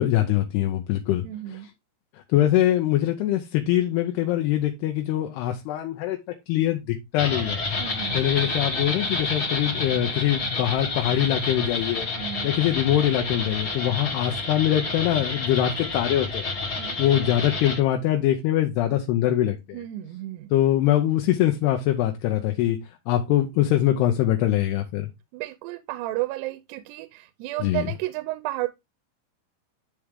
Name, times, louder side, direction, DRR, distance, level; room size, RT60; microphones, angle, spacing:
voice 1, 0.0-1.2 1.5-1.6 2.1-6.2 6.5-7.6 8.1-12.1 12.4-19.8 20.5-25.1 27.6-27.9, left 12 dB, 80° left, 2.9 m, -23 dB
voice 2, 1.2-1.7 7.8-8.3 12.2-12.5 16.8-17.0 19.7-20.5 25.3-28.7, right 17 dB, 90° right, 2.7 m, -32 dB
sound 1, 7.2-17.8, left 3 dB, 35° left, 2.8 m, -29 dB
10.5 x 4.9 x 3.6 m
omnidirectional pair, 4.8 m